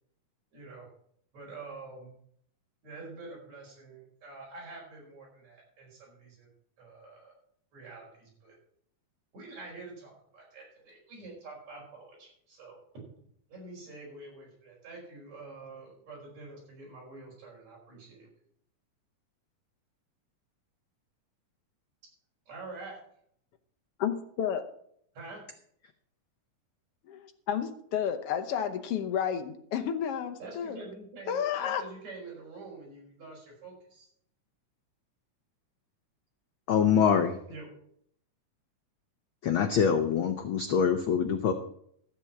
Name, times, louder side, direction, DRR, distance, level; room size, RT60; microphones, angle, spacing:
voice 1, 0.5-0.9 1.3-2.1 2.8-6.5 6.8-7.3 7.7-8.6 9.3-12.8 13.5-18.3 22.5-23.0 25.1-25.4 30.4-34.1 37.5-37.7, right 3 dB, 65° right, 6.3 m, -46 dB
voice 2, 24.0-24.6 27.1-30.8 31.3-31.8, left 8 dB, 65° left, 1.6 m, -31 dB
voice 3, 36.7-37.3 39.4-41.5, left 7 dB, 90° left, 1.1 m, -24 dB
14.0 x 7.5 x 5.9 m
omnidirectional pair, 3.5 m